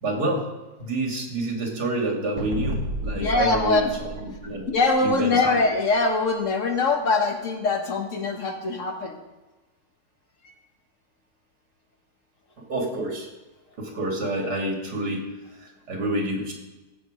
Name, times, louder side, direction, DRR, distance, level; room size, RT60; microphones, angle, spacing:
voice 1, 0.0-0.5 0.8-4.7 5.0-5.6 12.6-13.3 13.8-15.3 15.6-16.5, right 1 dB, 90° right, 0 dB, 3.0 m, -28 dB
sound 1, 2.4-5.1, equal, 65° right, 1.6 m, -32 dB
voice 2, 3.1-3.9 4.7-9.2, left 3 dB, 55° left, 4 dB, 1.5 m, -23 dB
15.5 x 6.2 x 5.0 m, 1.1 s
omnidirectional pair, 1.7 m